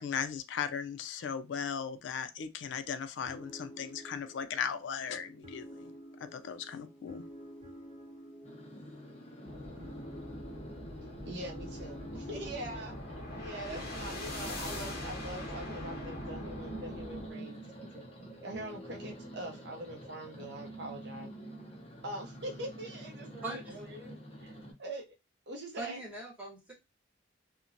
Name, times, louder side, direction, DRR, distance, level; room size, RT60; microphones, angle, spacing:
voice 1, 0.0-5.9 6.3-7.2, left 7 dB, 70° left, 0.3 m, -37 dB
sound 1, 3.2-20.7, equal, 30° right, 0.9 m, -51 dB
sound 2, 8.4-24.7, right 1 dB, 30° left, 0.6 m, -48 dB
sound 3, 9.4-17.3, left 1 dB, 55° left, 0.9 m, -42 dB
voice 2, 11.2-12.9 13.4-18.1 18.4-21.3 22.0-24.5 24.8-25.1 25.5-26.0, right 1 dB, 60° right, 0.6 m, -43 dB
voice 3, 23.4-23.8 25.8-26.7, right 2 dB, 10° right, 1.1 m, -41 dB
2.8 x 2.1 x 2.5 m
head